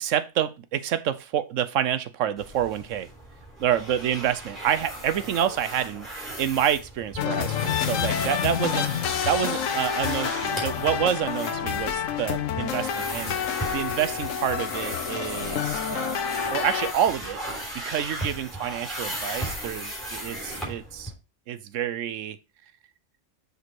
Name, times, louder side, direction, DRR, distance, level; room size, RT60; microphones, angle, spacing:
voice 1, 0.0-3.1 3.6-16.2 16.5-21.1 21.5-22.4, right 10 dB, 80° right, 1.1 m, -28 dB
sound 1, 2.4-21.1, right 1 dB, ahead, 3.4 m, -36 dB
sound 2, 7.2-16.9, left 9 dB, 80° left, 1.1 m, -28 dB
6.5 x 5.3 x 4.6 m
omnidirectional pair, 1.3 m